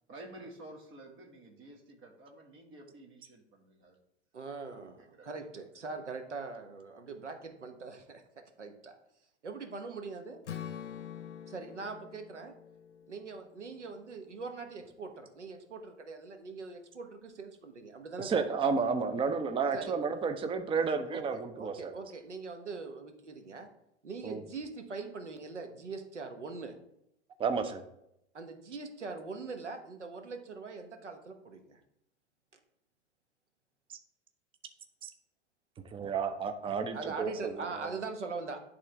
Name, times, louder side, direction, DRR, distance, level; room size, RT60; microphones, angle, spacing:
voice 1, 0.1-4.0 5.1-5.3, right 1 dB, 35° right, 2 dB, 1.8 m, -51 dB
voice 2, 4.3-9.0 9.4-10.4 11.5-12.5 13.1-18.4 19.7-19.9 21.1-23.7 24.0-26.8 28.3-31.8 36.9-38.6, right 4 dB, 85° right, 6 dB, 1.0 m, -42 dB
Strum, 10.5-14.6, left 8 dB, 85° left, 0.6 m, -46 dB
voice 3, 18.2-21.9 24.2-24.4 27.4-27.8 35.0-35.1 35.9-37.5 37.8-37.9, right 5 dB, 15° right, 8 dB, 0.6 m, -31 dB
10.5 x 3.7 x 3.4 m, 0.79 s
figure-of-eight pair, 85°, 34 cm